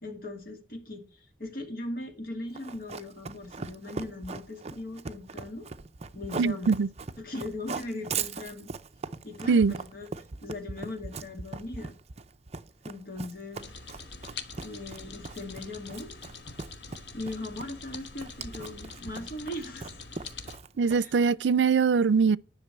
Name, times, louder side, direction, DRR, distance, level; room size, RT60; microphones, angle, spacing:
voice 1, 0.0-5.7 6.1-6.7 7.2-8.7 9.2-10.1 10.4-11.9 12.8-13.7 14.5-16.1 16.4-16.5 16.9-19.9 20.8-21.3, left 2 dB, 55° left, 2.4 m, -39 dB
Run, 2.5-21.2, right 4 dB, 40° right, 0.6 m, -39 dB
voice 2, 6.4-6.9 9.5-9.8 20.8-22.4, right 5 dB, 85° right, 0.4 m, -22 dB
sound 1, 13.6-20.6, left 4 dB, 80° left, 1.3 m, -45 dB
10.5 x 6.0 x 7.8 m
head